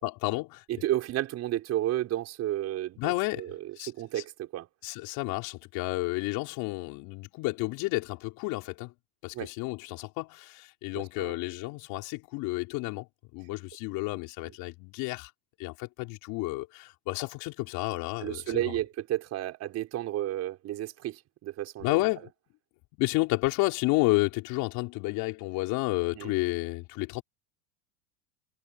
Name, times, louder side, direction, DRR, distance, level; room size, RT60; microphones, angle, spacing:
voice 1, 0.0-0.6 3.0-3.5 3.8-3.9 4.8-8.9 9.2-13.1 13.3-15.3 15.6-18.6 21.8-22.3 23.0-27.2, left 23 dB, 45° left, 5.5 m, -31 dB
voice 2, 0.7-4.7 9.3-9.5 10.9-11.4 18.2-22.0 26.1-26.3, right 13 dB, 30° right, 5.6 m, -32 dB
supercardioid pair, 150°, 47 cm